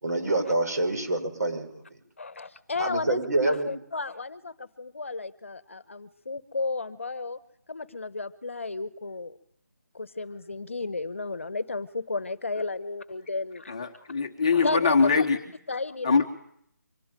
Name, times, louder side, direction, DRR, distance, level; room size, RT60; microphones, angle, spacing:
voice 1, 0.0-1.8 2.8-3.7, right 2 dB, 60° right, 5 dB, 6.4 m, -26 dB
voice 2, 2.2-7.4 7.7-9.4 9.9-13.8 14.5-15.3 15.7-16.3, left 3 dB, 45° left, 14 dB, 1.2 m, -33 dB
voice 3, 13.7-15.4 16.0-16.3, left 4 dB, 20° left, 2 dB, 1.2 m, -22 dB
25.0 x 17.5 x 9.1 m, 0.68 s
figure-of-eight pair, 180°, 10 cm